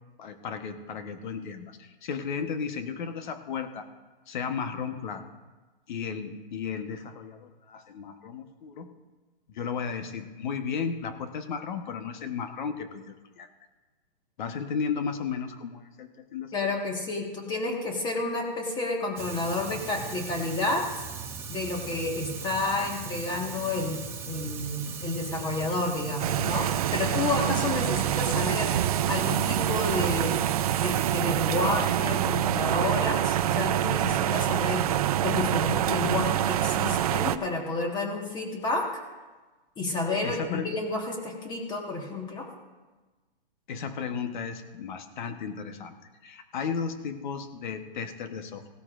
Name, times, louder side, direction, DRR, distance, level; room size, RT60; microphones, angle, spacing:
voice 1, 0.2-3.9 4.3-5.2 5.9-8.9 9.5-13.5 14.4-16.5 40.2-40.7 43.7-45.9 46.2-48.7, left 6 dB, 55° left, 8 dB, 1.2 m, -34 dB
voice 2, 16.5-20.8 21.5-24.0 24.3-28.8 29.1-30.4 30.8-34.9 35.2-38.9 39.8-42.5, left 2 dB, 15° left, 2 dB, 1.6 m, -30 dB
Fire, 19.2-31.2, right 5 dB, 10° right, 0.8 m, -39 dB
sound 1, 26.2-37.4, right 12 dB, 40° right, 0.5 m, -26 dB
17.0 x 13.0 x 2.5 m, 1.3 s
hypercardioid pair, 150°, 29 cm